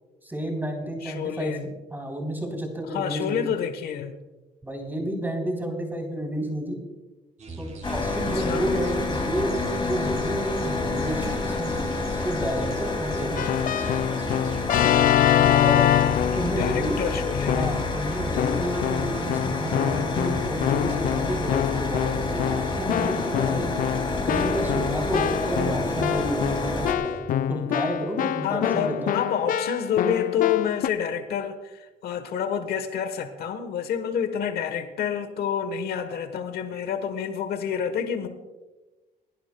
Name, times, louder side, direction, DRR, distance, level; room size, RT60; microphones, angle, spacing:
voice 1, 0.2-1.5 1.9-3.4 4.6-6.8 7.6-9.5 9.8-13.5 15.4-15.8 16.3-17.0 17.5-23.7 24.2-27.1 27.5-29.1, right 1 dB, 10° right, 2 dB, 3.5 m, -30 dB
voice 2, 1.0-1.7 2.9-4.2 8.2-8.7 15.6-17.8 28.4-38.3, left 8 dB, 70° left, 9 dB, 1.2 m, -28 dB
sound 1, 7.4-27.2, right 2 dB, 45° right, 4.5 m, -41 dB
sound 2, 7.8-26.9, left 3 dB, 30° left, 2.6 m, -29 dB
Keyboard (musical), 13.4-17.0 17.5-18.0 18.4-30.9, left 11 dB, 55° left, 0.4 m, -25 dB
27.5 x 11.0 x 2.3 m, 1.1 s
cardioid pair, 105°, 17 cm